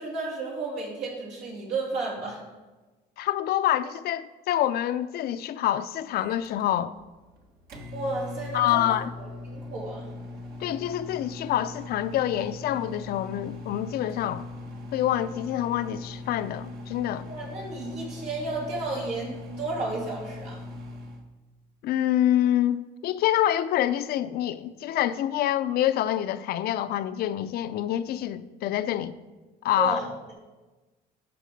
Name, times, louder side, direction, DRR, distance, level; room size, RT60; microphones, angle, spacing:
voice 1, 0.0-2.4 7.9-10.1 17.3-20.6 29.7-30.3, right 2 dB, 90° right, 2.8 m, -33 dB
voice 2, 3.2-7.0 8.5-9.1 10.6-14.5 14.9-17.2 21.8-29.1 29.6-30.0, left 12 dB, 65° left, 0.5 m, -26 dB
Microwave oven, 6.1-21.2, left 2 dB, 65° right, 1.4 m, -40 dB
11.5 x 4.2 x 5.2 m
cardioid pair, 110°, 17 cm